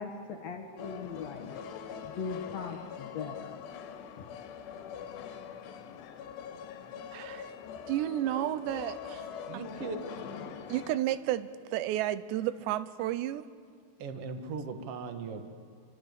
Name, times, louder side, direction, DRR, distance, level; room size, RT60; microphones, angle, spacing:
voice 1, 0.0-1.5 2.0-3.5, left 5 dB, 60° left, 4 dB, 1.8 m, -39 dB
sound 1, 0.8-11.0, left 7 dB, 85° left, 3.7 m, -43 dB
voice 2, 7.1-7.5 7.9-9.3 9.5-9.9 10.7-13.4, right 13 dB, 90° right, 14 dB, 3.0 m, -32 dB
voice 3, 9.5-10.0 14.0-15.4, right 4 dB, 50° right, 6 dB, 1.8 m, -38 dB
27.5 x 24.0 x 8.2 m, 2.1 s
omnidirectional pair, 4.9 m